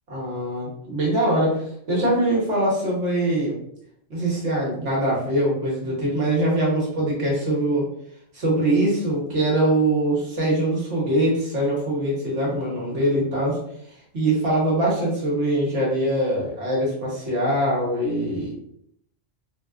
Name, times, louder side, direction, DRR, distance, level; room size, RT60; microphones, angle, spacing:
voice 1, 0.1-3.5 4.1-7.9 8.3-13.6 14.1-18.5, right 1 dB, 80° right, -4 dB, 1.5 m, -23 dB
3.4 x 2.3 x 2.4 m, 0.69 s
omnidirectional pair, 1.2 m